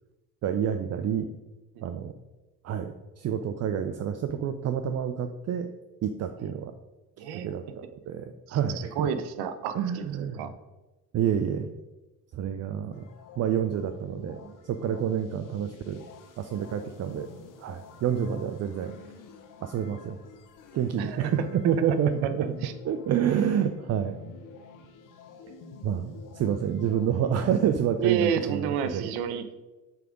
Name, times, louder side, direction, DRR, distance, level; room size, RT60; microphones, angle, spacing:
voice 1, 0.4-1.3 1.8-2.1 2.6-5.7 6.0-6.7 7.3-9.1 9.7-10.5 11.1-11.7 12.3-13.0 13.4-16.1 16.4-17.3 17.6-19.0 19.6-20.2 20.7-22.5 22.8-24.2 25.8-29.1, right 8 dB, 40° right, 8 dB, 0.5 m, -28 dB
voice 2, 7.2-7.5 8.5-10.5 21.0-21.3 22.2-22.3 22.6-22.7 28.0-29.5, right 8 dB, 75° right, 10 dB, 0.8 m, -30 dB
sound 1, 12.9-28.9, left 5 dB, 55° left, 0.9 m, -49 dB
7.6 x 3.5 x 4.9 m, 1.1 s
supercardioid pair, 80°, 38 cm